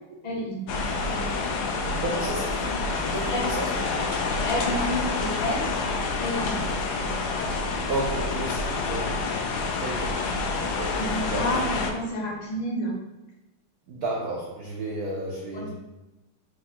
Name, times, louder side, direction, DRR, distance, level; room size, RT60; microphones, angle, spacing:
voice 1, 0.2-0.6 1.1-1.3 3.3-3.5 4.5-5.6 6.2-6.6 11.0-12.9 15.5-15.7, equal, 70° left, -4 dB, 1.8 m, -30 dB
sound 1, 0.7-11.9, left 3 dB, 90° left, 0.8 m, -28 dB
voice 2, 2.0-4.1 7.9-9.3 9.7-10.3 10.8-11.6 13.9-15.7, right 2 dB, 75° right, -2 dB, 0.8 m, -32 dB
4.7 x 2.2 x 4.1 m, 1.0 s
omnidirectional pair, 2.3 m